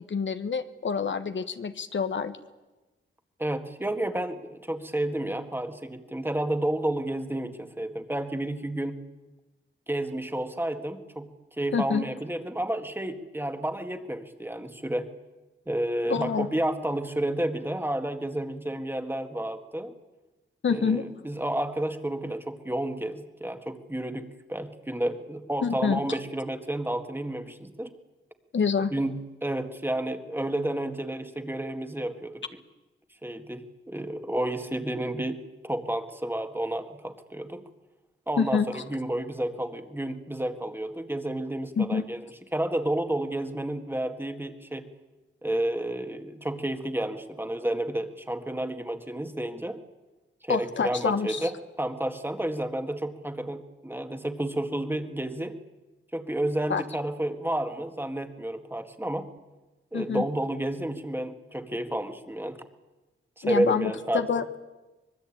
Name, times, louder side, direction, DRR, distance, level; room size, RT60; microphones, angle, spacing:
voice 1, 0.1-2.4 11.7-12.0 16.1-16.5 20.6-21.0 25.6-26.0 28.5-28.9 38.4-38.8 41.8-42.0 50.5-51.5 56.7-56.8 59.9-60.2 63.4-64.4, left 6 dB, 65° left, 10 dB, 1.3 m, -27 dB
voice 2, 3.4-9.0 9.9-11.3 11.6-15.1 15.7-19.9 20.7-27.9 28.9-32.4 33.2-37.7 38.3-42.2 42.5-44.9 45.4-49.8 50.4-55.6 56.1-59.3 59.9-62.7 63.4-64.4, right 1 dB, 10° right, 8 dB, 1.9 m, -31 dB
24.5 x 21.0 x 8.7 m, 1.1 s
wide cardioid pair, 90°, 21 cm